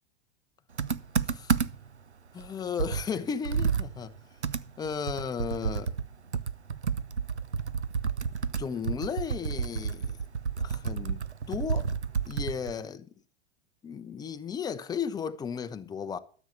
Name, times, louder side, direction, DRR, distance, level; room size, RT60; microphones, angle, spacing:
Computer keyboard, 0.8-2.0 2.4-2.5 2.8-6.1 6.3-12.8, right 6 dB, 90° right, 0.6 m, -31 dB
voice 1, 2.3-4.1 4.8-5.9 8.6-10.2 10.6-11.9 12.3-13.1 13.8-16.2, left 6 dB, 10° left, 0.7 m, -35 dB
13.0 x 7.2 x 6.6 m
figure-of-eight pair, 90°, 33 cm